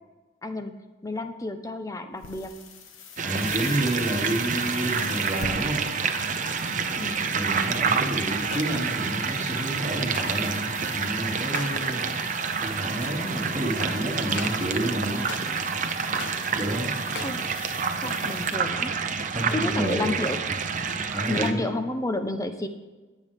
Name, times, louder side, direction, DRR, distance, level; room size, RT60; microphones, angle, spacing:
voice 1, 0.4-2.5 7.0-7.2 17.2-17.4 18.0-18.9 19.5-20.4 21.3-22.7, left 2 dB, 15° left, 7 dB, 0.8 m, -30 dB
sound 1, 2.1-18.5, left 5 dB, 85° left, 1.4 m, -43 dB
voice 2, 3.2-5.9 7.3-12.1 12.6-15.2 16.6-16.9 19.3-20.2 21.1-21.7, right 1 dB, 15° right, -5 dB, 2.5 m, -29 dB
sound 2, 3.2-21.5, right 5 dB, 40° right, 0.8 m, -28 dB
sound 3, 6.4-6.7 8.5-8.8 10.1-10.4 11.5-11.9 13.0-13.2 14.3-14.7 15.3-15.6 16.2-16.5 17.1-17.5 18.8-19.1, left 4 dB, 65° left, 0.9 m, -40 dB
20.0 x 8.3 x 3.6 m, 1.2 s
head